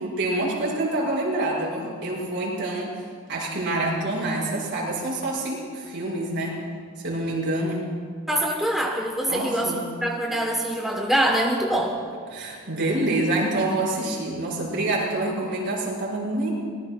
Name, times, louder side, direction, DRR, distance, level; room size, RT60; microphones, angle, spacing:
voice 1, 0.0-2.9 3.3-6.6 7.0-7.9 9.3-9.8 10.3-10.4 12.3-16.5, right 2 dB, 55° right, -5 dB, 5.0 m, -27 dB
voice 2, 8.3-12.0, right 1 dB, ahead, 0 dB, 0.9 m, -24 dB
24.0 x 19.5 x 2.2 m, 2.1 s
head